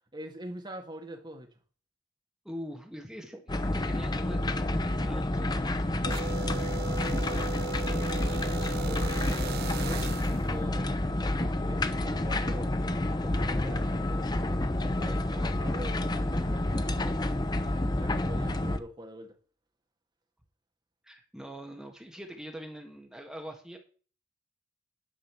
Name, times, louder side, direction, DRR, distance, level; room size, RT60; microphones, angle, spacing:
voice 1, 0.1-1.5 6.8-8.4 8.8-12.7 13.1-14.2 14.8-17.5 18.0-19.4, right 1 dB, 25° right, 1.9 m, -44 dB
voice 2, 2.4-6.0 21.0-23.8, equal, 5° right, 1.6 m, -43 dB
sound 1, 3.5-18.8, left 1 dB, 20° left, 0.7 m, -29 dB
sound 2, 6.1-10.5, right 7 dB, 55° right, 0.4 m, -38 dB
10.5 x 5.7 x 7.1 m
head